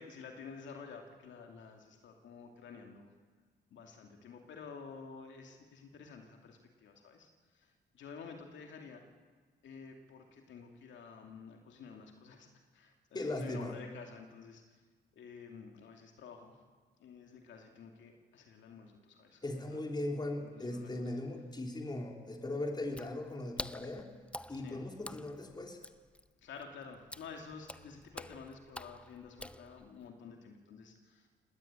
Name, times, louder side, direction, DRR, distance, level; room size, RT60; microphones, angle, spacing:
voice 1, 0.0-3.1 3.7-7.3 7.5-7.7 7.9-9.0 9.6-12.5 12.7-14.6 15.2-16.6 17.0-19.4 19.7-19.8 20.4-20.9 24.6-24.8 26.4-31.3, left 5 dB, 70° left, 3 dB, 2.5 m, -50 dB
voice 2, 13.1-13.8 19.4-24.1 24.5-25.8, left 2 dB, 20° left, 2 dB, 3.5 m, -38 dB
Water / Splash splatter, 22.8-30.1, left 1 dB, 5° left, 0.6 m, -48 dB
19.5 x 17.5 x 9.0 m, 1.4 s
cardioid pair, 90°, 20 cm